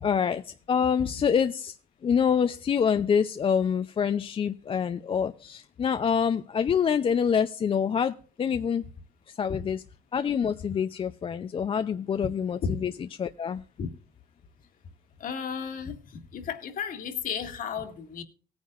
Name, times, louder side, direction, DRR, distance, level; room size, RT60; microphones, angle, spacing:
voice 1, 0.0-1.8 2.0-8.8 9.4-9.8 10.1-13.6, left 7 dB, 35° left, 10 dB, 0.5 m, -26 dB
voice 2, 15.2-18.2, left 7 dB, 55° left, 7 dB, 1.8 m, -33 dB
18.0 x 9.5 x 2.4 m, 0.41 s
cardioid pair, 110°, 17 cm